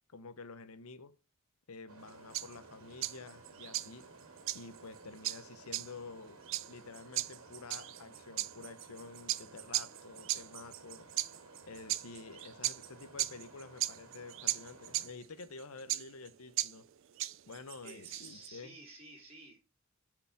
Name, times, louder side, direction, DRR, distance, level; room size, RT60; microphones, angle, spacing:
voice 1, 0.1-1.1 1.7-4.1 4.5-6.4 6.7-11.1 11.7-16.8 17.5-18.8, left 4 dB, 90° left, 0.8 m, -49 dB
sound 1, 1.9-15.1, right 3 dB, 85° right, 2.0 m, -56 dB
sound 2, 2.0-18.5, right 15 dB, 65° right, 0.4 m, -38 dB
voice 2, 17.8-19.6, right 2 dB, 30° right, 3.2 m, -52 dB
6.9 x 5.0 x 5.6 m
head